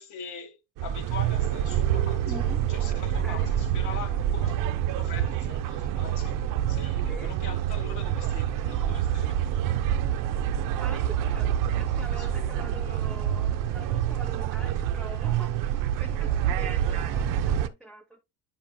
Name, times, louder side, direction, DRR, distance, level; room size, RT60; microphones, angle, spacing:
voice 1, 0.0-2.3 2.7-4.6 4.9-6.4 6.7-10.2 11.9-12.5, left 6 dB, 50° left, 1.6 m, -42 dB
sound 1, 0.8-17.7, right 10 dB, 60° right, 0.7 m, -27 dB
voice 2, 2.3-2.6 3.0-3.6 7.1-7.3 10.8-18.2, right 1 dB, ahead, 0.8 m, -44 dB
8.8 x 5.8 x 2.3 m
cardioid pair, 145°, 37 cm